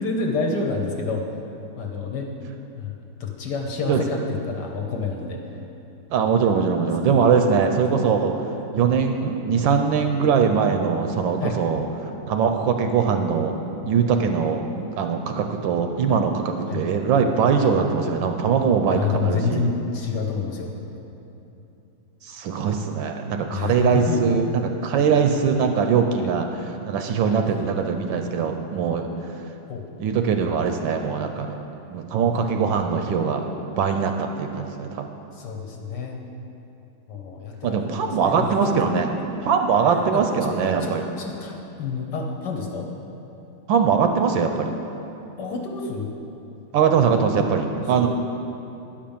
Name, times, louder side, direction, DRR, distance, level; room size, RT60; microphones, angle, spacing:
voice 1, 0.0-1.3 1.8-2.3 2.7-5.6 11.4-11.6 13.8-13.9 16.1-16.2 16.7-16.8 18.9-20.7 23.5-24.2 26.1-26.3 27.3-27.4 29.7-29.9 35.3-36.2 37.1-39.2 39.9-42.9 45.4-46.1 47.3-47.4 47.9-48.1, left 4 dB, 60° left, 1 dB, 1.3 m, -29 dB
voice 2, 6.1-8.3 8.7-11.8 12.3-13.5 13.9-19.7 22.2-29.1 30.0-31.6 31.9-33.5 33.8-35.0 37.6-39.1 39.5-41.0 43.7-44.7 46.7-48.1, right 6 dB, 75° right, 5 dB, 1.2 m, -21 dB
10.5 x 5.1 x 7.1 m, 2.9 s
omnidirectional pair, 2.3 m